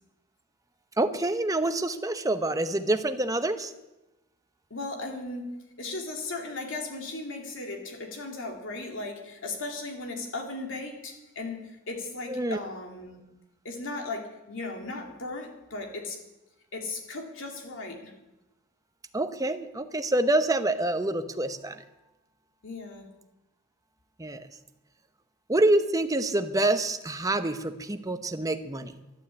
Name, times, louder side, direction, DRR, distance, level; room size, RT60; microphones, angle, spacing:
voice 1, 1.0-3.7 12.3-12.6 19.1-21.8 24.2-24.5 25.5-28.9, right 2 dB, 15° right, 9 dB, 0.9 m, -26 dB
voice 2, 4.7-13.2 13.6-16.2 16.7-18.1 22.6-23.1, left 2 dB, 65° left, 2 dB, 2.8 m, -37 dB
12.0 x 11.5 x 8.4 m, 0.98 s
head